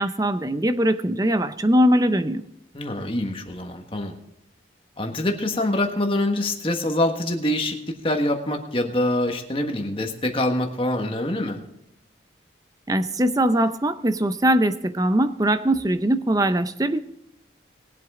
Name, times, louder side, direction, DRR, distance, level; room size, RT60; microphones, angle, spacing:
voice 1, 0.0-2.4 12.9-17.0, right 1 dB, 20° right, 11 dB, 0.6 m, -21 dB
voice 2, 2.7-4.1 5.0-11.6, left 1 dB, 30° left, 3 dB, 1.5 m, -25 dB
21.0 x 8.1 x 3.7 m, 0.84 s
head